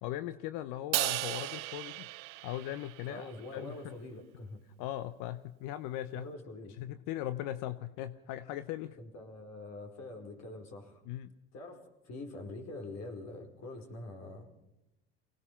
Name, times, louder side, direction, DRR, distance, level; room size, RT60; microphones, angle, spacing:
voice 1, 0.0-2.1 2.4-3.9 4.8-6.3 6.8-9.0 11.1-11.3, left 13 dB, 65° left, 13 dB, 0.9 m, -39 dB
Crash cymbal, 0.9-3.3, right 20 dB, 70° right, 0.9 m, -35 dB
voice 2, 3.1-4.6 6.1-6.7 9.0-11.0 11.5-14.5, left 2 dB, 50° left, 3 dB, 5.1 m, -45 dB
25.0 x 18.5 x 5.7 m, 0.91 s
hypercardioid pair, 80°, 33 cm